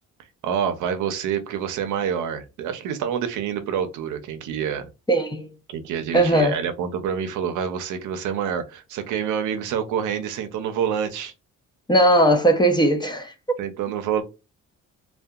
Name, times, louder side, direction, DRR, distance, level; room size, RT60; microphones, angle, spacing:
voice 1, 0.4-4.9 5.7-11.3 13.6-14.2, right 8 dB, 80° right, 0.6 m, -27 dB
voice 2, 5.1-5.5 6.1-6.6 11.9-13.3, right 1 dB, 15° left, 0.5 m, -18 dB
2.6 x 2.2 x 2.3 m
cardioid pair, 90°, 30 cm